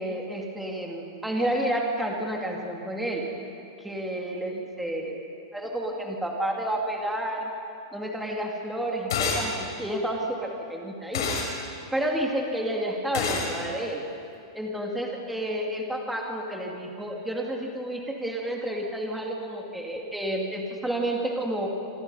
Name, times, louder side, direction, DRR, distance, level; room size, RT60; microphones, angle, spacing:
voice 1, 0.0-3.3 3.8-5.2 5.5-7.5 7.9-11.3 11.9-14.0 14.5-21.7, right 1 dB, ahead, -1 dB, 2.4 m, -30 dB
sound 1, 9.1-9.5 11.1-11.5 13.1-13.5, left 4 dB, 65° left, 6.4 m, -27 dB
26.5 x 25.0 x 5.6 m, 2.6 s
supercardioid pair, 175°, 2 cm